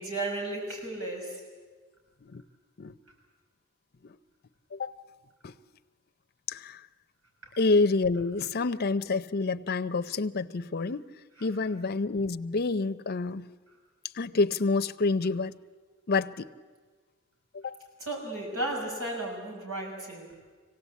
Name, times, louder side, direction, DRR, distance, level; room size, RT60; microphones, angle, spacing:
voice 1, 0.0-1.4 18.1-20.3, right 2 dB, 90° right, 6.0 m, -34 dB
voice 2, 6.5-6.8 7.6-11.0 11.4-13.5 14.1-15.5 16.1-16.5 17.5-17.8, left 3 dB, 45° left, 0.6 m, -28 dB
25.0 x 17.5 x 8.3 m
head